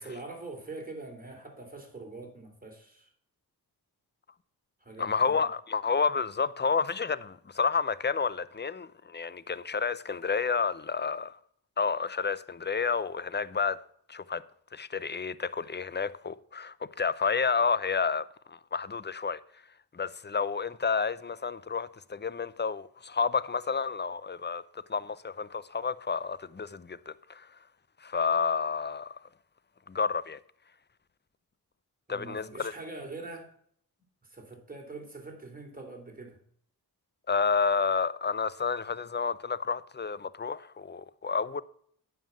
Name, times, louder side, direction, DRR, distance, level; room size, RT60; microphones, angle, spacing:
voice 1, 0.0-3.1 4.8-5.4 32.1-33.5 34.2-36.4, right 3 dB, 20° right, 3.6 m, -43 dB
voice 2, 5.0-11.4 11.8-13.8 14.1-14.4 14.7-19.4 19.9-27.5 28.0-29.1 29.9-30.4 32.1-32.7 37.3-41.6, left 5 dB, 25° left, 0.6 m, -30 dB
9.2 x 5.7 x 7.3 m
cardioid pair, 45°, 39 cm